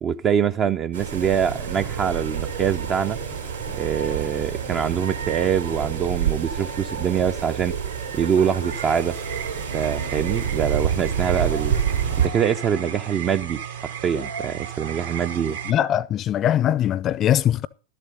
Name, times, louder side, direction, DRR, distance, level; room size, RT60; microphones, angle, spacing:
voice 1, 0.0-3.2 3.7-7.7 8.1-9.1 9.7-11.7 12.2-15.6, right 8 dB, 30° right, 0.5 m, -24 dB
sound 1, 0.9-12.3, right 7 dB, 75° right, 3.4 m, -28 dB
sound 2, 8.7-15.7, right 8 dB, 60° right, 1.2 m, -34 dB
voice 2, 15.7-17.7, left 11 dB, 30° left, 0.5 m, -21 dB
12.5 x 7.5 x 5.4 m
figure-of-eight pair, 90°, 0 cm